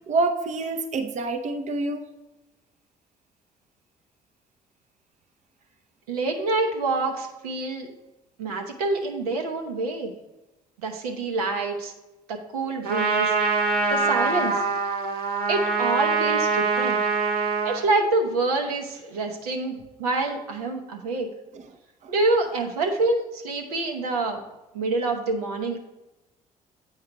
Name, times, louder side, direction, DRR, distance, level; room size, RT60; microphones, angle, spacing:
voice 1, 0.1-2.0 21.5-21.7 22.0-22.1, right 3 dB, 40° right, 6 dB, 0.6 m, -27 dB
voice 2, 6.1-7.9 8.4-10.1 10.8-11.9 12.3-13.6 13.9-14.6 15.5-17.0 17.6-21.3 22.1-24.4 24.7-25.8, right 3 dB, 75° right, 3 dB, 0.8 m, -26 dB
Trumpet, 12.8-17.9, right 4 dB, 55° right, 1.1 m, -24 dB
8.1 x 4.8 x 4.5 m, 1.0 s
figure-of-eight pair, 50°, 19 cm